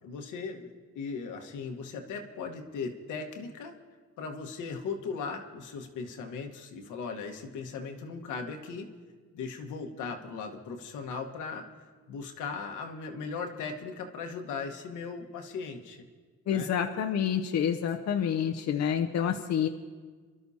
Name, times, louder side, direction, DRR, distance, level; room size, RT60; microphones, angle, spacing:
voice 1, 0.0-3.7 4.2-8.9 9.3-16.0 16.5-16.7, left 5 dB, 85° left, 3 dB, 1.4 m, -38 dB
voice 2, 16.5-19.7, left 8 dB, 60° left, 5 dB, 0.7 m, -28 dB
26.5 x 12.0 x 2.8 m, 1.5 s
cardioid pair, 90°, 30 cm